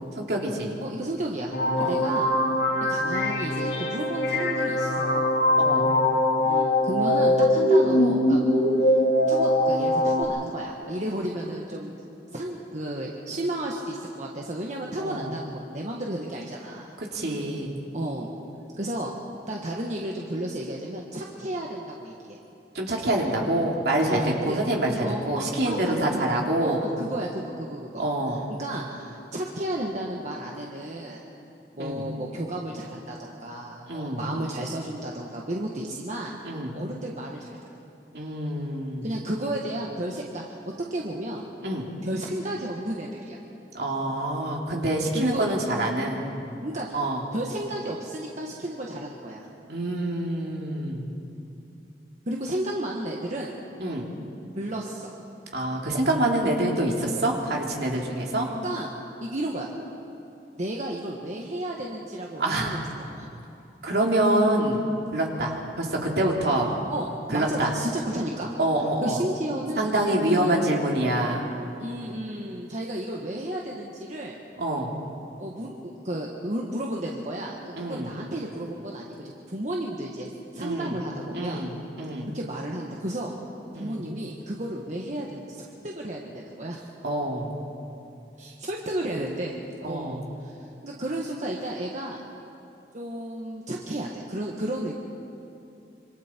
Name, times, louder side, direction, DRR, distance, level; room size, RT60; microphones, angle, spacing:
voice 1, 0.2-0.8 1.8-2.0 5.5-5.9 15.0-15.3 17.0-17.8 22.7-26.8 28.0-28.4 31.8-32.0 33.9-34.3 36.4-36.8 38.1-39.2 41.6-41.9 43.7-46.2 46.9-47.2 49.7-51.1 53.8-54.1 55.5-58.5 62.4-62.9 63.8-64.8 65.1-66.8 67.3-67.7 68.6-69.2 69.8-71.5 74.6-74.9 77.7-78.1 80.6-81.0 81.3-82.3 83.7-84.0 87.0-87.5 89.8-90.3, right 1 dB, 65° right, -1 dB, 3.1 m, -26 dB
voice 2, 0.8-2.3 2.9-5.4 6.4-9.0 9.3-12.0 12.3-16.9 17.9-18.3 18.8-19.2 19.5-22.4 24.1-24.6 25.0-26.2 26.6-28.1 28.6-31.2 31.7-36.3 36.7-37.6 39.0-41.4 42.0-43.4 45.1-45.4 46.6-47.0 47.3-49.5 52.3-53.5 54.5-55.1 58.6-58.9 59.2-59.7 60.6-63.3 66.9-68.5 69.0-70.6 71.8-74.4 75.4-79.1 79.5-81.6 82.3-83.4 83.8-86.9 88.4-89.5 89.9-92.2 92.9-94.9, right 1 dB, 45° right, -1 dB, 1.5 m, -33 dB
sound 1, 1.5-10.2, left 1 dB, 65° left, 3.0 m, -22 dB
26.5 x 26.0 x 4.6 m, 2.8 s
head